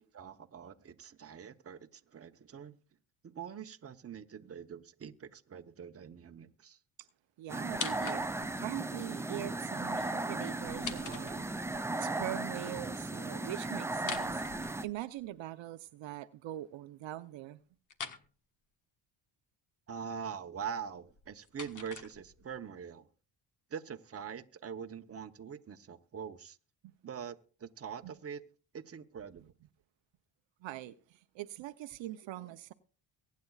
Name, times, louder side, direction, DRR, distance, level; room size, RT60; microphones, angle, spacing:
voice 1, 0.1-2.8 3.2-6.8 19.9-23.1 23.7-26.6 27.0-28.4 28.7-29.5, right 7 dB, 30° right, 1.0 m, -44 dB
voice 2, 7.4-11.5 11.9-14.4 14.8-17.6 28.0-28.1 30.6-32.7, right 14 dB, 70° right, 0.8 m, -42 dB
sound 1, 7.5-14.9, right 2 dB, 5° right, 0.5 m, -36 dB
sound 2, 7.7-8.6 10.6-11.8 13.9-15.3 17.9-18.3 21.0-22.6, left 5 dB, 40° left, 1.4 m, -43 dB
23.0 x 9.4 x 2.4 m
cardioid pair, 90°, 48 cm